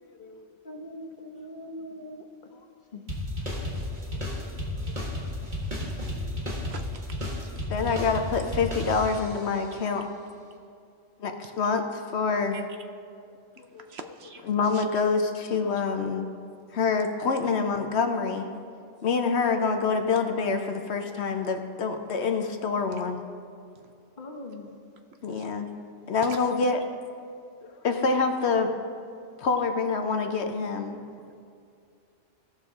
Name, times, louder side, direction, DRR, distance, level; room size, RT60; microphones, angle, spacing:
voice 1, 0.0-0.5 4.1-4.5 4.9-5.1 6.1-6.2 7.7-10.1 11.2-12.6 13.6-13.9 14.5-16.3 16.7-18.5 19.0-23.2 25.2-25.7 26.1-26.8 27.6-28.7 29.4-31.0, left 4 dB, 65° left, 6 dB, 1.0 m, -26 dB
voice 2, 0.6-2.2 2.9-3.0 24.2-24.7, left 1 dB, 40° left, 1 dB, 1.1 m, -41 dB
sound 1, 3.1-9.5, left 1 dB, 40° right, 1.9 m, -33 dB
voice 3, 7.3-7.7 12.5-12.6 13.6-14.8 23.8-23.9 25.3-25.4 26.3-26.4, right 5 dB, 65° right, 6 dB, 0.8 m, -44 dB
17.0 x 6.4 x 3.7 m, 2.4 s
omnidirectional pair, 1.3 m